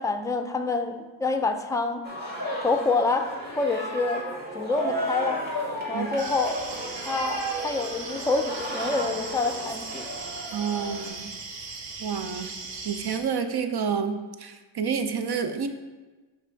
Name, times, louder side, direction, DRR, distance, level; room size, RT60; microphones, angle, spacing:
voice 1, 0.0-2.0 2.6-3.3 3.6-4.2 4.5-5.4 5.9-6.6 7.0-10.0, left 3 dB, 10° left, 7 dB, 0.4 m, -27 dB
sound 1, 2.0-11.1, equal, 20° right, 1.6 m, -33 dB
sound 2, 6.2-13.2, right 4 dB, 85° right, 0.9 m, -38 dB
voice 2, 10.5-11.3 12.0-12.5 12.8-15.7, right 6 dB, 60° right, 8 dB, 0.6 m, -29 dB
5.8 x 4.4 x 4.5 m, 1.2 s
wide cardioid pair, 70°, 44 cm